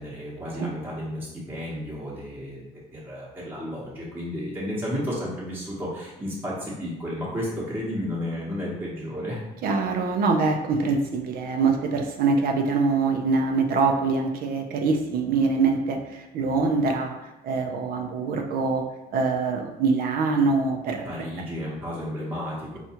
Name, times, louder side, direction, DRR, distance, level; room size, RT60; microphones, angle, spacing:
voice 1, 0.0-9.4 21.0-22.8, equal, 10° right, -7 dB, 0.9 m, -32 dB
voice 2, 9.6-18.9 19.1-21.1, right 4 dB, 60° right, 3 dB, 0.4 m, -24 dB
4.3 x 2.3 x 2.8 m, 0.98 s
cardioid pair, 110°, 17 cm